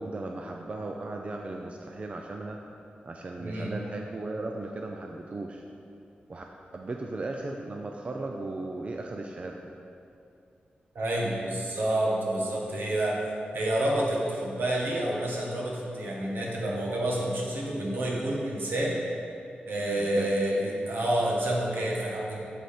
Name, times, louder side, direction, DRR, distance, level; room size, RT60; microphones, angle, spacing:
voice 1, 0.0-2.6 3.0-5.6 6.3-6.4 6.7-9.6 20.0-20.3, right 2 dB, 35° right, 2 dB, 0.5 m, -36 dB
voice 2, 3.4-3.7 11.0-13.2 13.5-19.0 19.7-22.4, right 1 dB, 75° right, -3 dB, 1.7 m, -28 dB
8.1 x 7.8 x 4.3 m, 2.6 s
wide cardioid pair, 165°, 3 cm